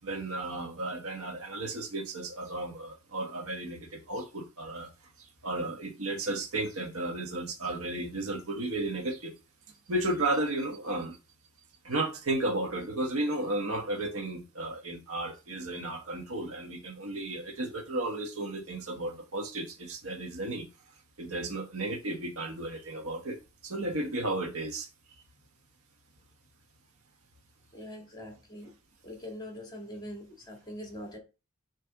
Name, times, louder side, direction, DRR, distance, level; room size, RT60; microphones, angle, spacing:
voice 1, 0.0-4.9 5.4-9.4 9.9-11.2 11.8-20.7 21.2-23.4 23.6-24.9, right 2 dB, 80° right, 1.3 m, -33 dB
voice 2, 27.7-28.7 29.0-31.2, left 1 dB, 20° left, 1.9 m, -43 dB
6.6 x 3.3 x 4.7 m
head